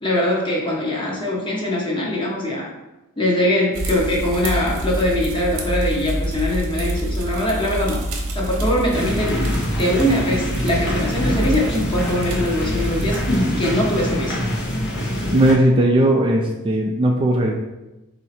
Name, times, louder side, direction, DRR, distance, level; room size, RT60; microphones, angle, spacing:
voice 1, 0.0-2.7 3.2-8.0 8.3-14.4, left 1 dB, 25° left, -3 dB, 1.0 m, -22 dB
sound 1, 3.7-13.4, right 1 dB, 70° right, 0.9 m, -27 dB
sound 2, 8.9-15.5, left 1 dB, 55° left, 1.0 m, -25 dB
voice 2, 15.3-17.5, right 1 dB, 25° right, 0 dB, 0.4 m, -17 dB
4.3 x 2.8 x 4.2 m, 1.0 s
head